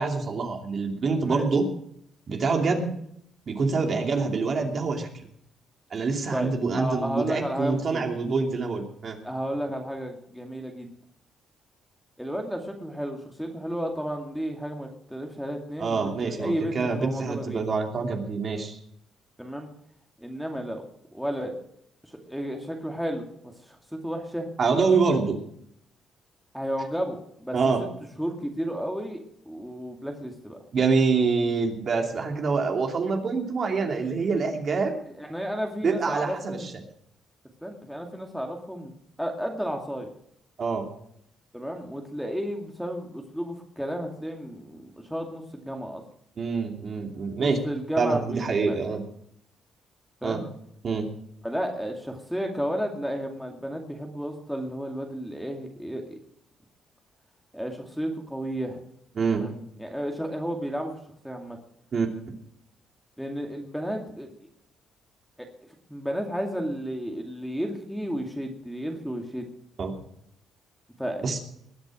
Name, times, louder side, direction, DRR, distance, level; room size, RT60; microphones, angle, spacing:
voice 1, 0.0-1.7 2.3-2.9 3.5-5.1 5.9-9.2 15.8-18.8 24.6-25.4 27.5-27.8 30.7-35.0 35.8-36.7 40.6-40.9 46.4-47.6 48.0-49.0 50.2-50.4 50.8-51.1 59.2-59.4 61.9-62.1 69.8-69.9 71.2-71.4, right 4 dB, 50° right, 3 dB, 2.8 m, -26 dB
voice 2, 6.3-8.0 9.2-10.9 12.2-17.6 19.4-19.7 20.2-20.9 21.1-21.5 22.1-24.5 26.5-27.9 28.2-30.6 35.1-36.7 37.6-38.9 39.2-40.1 41.5-46.0 47.4-49.0 50.2-50.5 51.4-56.2 57.5-58.8 59.4-60.9 61.2-61.6 63.2-64.3 65.4-65.5 65.9-69.5 71.0-71.4, equal, ahead, 2 dB, 2.3 m, -32 dB
20.5 x 8.1 x 6.3 m, 0.70 s
cardioid pair, 90°, 0 cm